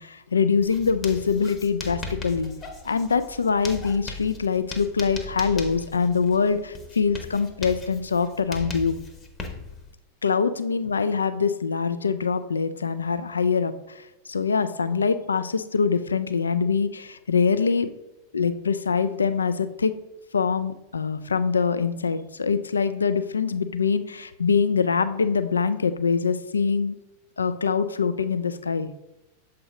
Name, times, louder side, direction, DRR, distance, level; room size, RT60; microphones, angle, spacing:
voice 1, 0.0-2.5 2.9-9.0 10.2-17.9 18.3-19.9 20.3-27.0 27.4-28.9, left 5 dB, 75° left, 12 dB, 0.3 m, -24 dB
Writing, 0.6-9.9, left 3 dB, 25° left, 0.9 m, -39 dB
7.0 x 4.8 x 2.9 m, 0.97 s
figure-of-eight pair, 90°, 0 cm